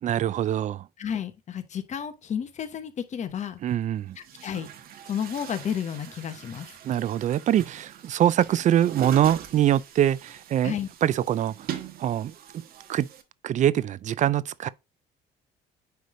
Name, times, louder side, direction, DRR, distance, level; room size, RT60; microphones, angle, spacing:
voice 1, 0.0-0.9 3.6-4.2 6.8-10.7 11.0-11.7 12.0-12.3 12.9-13.1 13.4-14.7, right 11 dB, 45° right, 0.4 m, -24 dB
voice 2, 1.0-3.6 4.2-4.7 5.1-6.7 10.6-10.9, left 8 dB, 45° left, 1.1 m, -32 dB
Chatter / Gurgling / Tap, 3.3-3.4 4.1-13.2, right 9 dB, 65° right, 1.1 m, -42 dB
9.3 x 3.4 x 3.8 m
cardioid pair, 110°, 17 cm